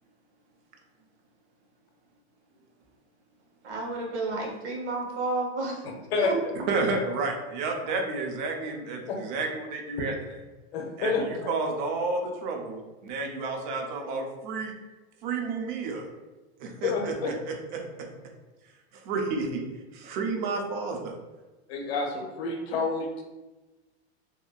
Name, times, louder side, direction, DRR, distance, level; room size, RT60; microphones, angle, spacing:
voice 1, 3.6-5.8 6.2-6.4, right 2 dB, 90° right, -1 dB, 1.0 m, -31 dB
voice 2, 6.7-10.1 11.0-14.7 15.2-16.1 16.6-18.1 18.9-19.6 19.9-21.1, right 3 dB, 45° right, 2 dB, 0.6 m, -31 dB
voice 3, 10.7-11.5 16.6-17.3 21.7-23.2, left 4 dB, 65° left, 2 dB, 0.7 m, -29 dB
2.7 x 2.5 x 2.3 m, 1.1 s
supercardioid pair, 150°, 33 cm